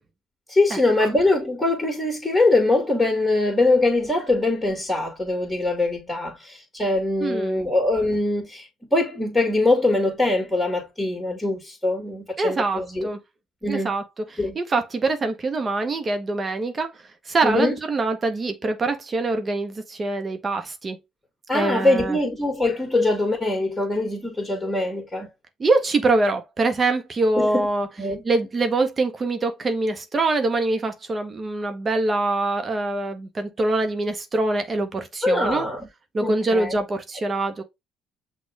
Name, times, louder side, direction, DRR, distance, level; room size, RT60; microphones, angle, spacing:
voice 1, 0.5-13.1 13.6-13.9 14.4-14.6 17.4-17.8 21.5-25.3 27.4-27.7 28.0-28.2 35.2-35.9 36.2-36.8, left 2 dB, 10° left, 2.0 m, -22 dB
voice 2, 7.2-7.6 12.4-13.2 13.7-14.0 14.5-16.9 17.3-21.0 21.5-22.2 25.6-27.9 28.2-35.7 36.1-37.6, right 2 dB, 35° right, 0.9 m, -24 dB
6.1 x 2.4 x 3.3 m
hypercardioid pair, 65°, 0 cm